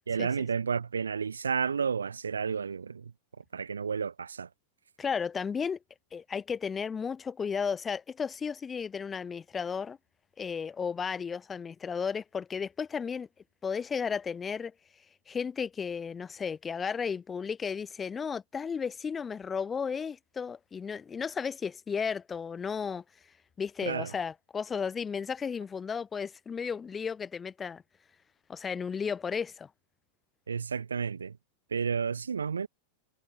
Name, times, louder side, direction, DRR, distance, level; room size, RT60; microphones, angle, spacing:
voice 1, 0.1-3.1 3.5-4.5 23.9-24.1 30.5-31.4 31.7-32.7, right 6 dB, 70° right, 1.8 m, -31 dB
voice 2, 5.0-5.8 6.1-10.0 10.4-13.3 13.6-14.7 15.3-23.0 23.6-27.8 28.5-29.7, left 6 dB, 20° left, 0.5 m, -34 dB
figure-of-eight pair, 90°, 0 cm